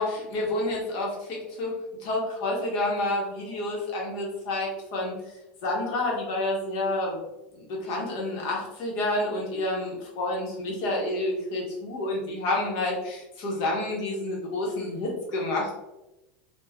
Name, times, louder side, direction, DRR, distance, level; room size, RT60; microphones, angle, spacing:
voice 1, 0.0-1.7 2.0-5.1 5.6-7.2 7.5-15.7, left 2 dB, 60° left, -2 dB, 1.1 m, -29 dB
3.3 x 2.4 x 2.3 m, 0.97 s
supercardioid pair, 130°, 6 cm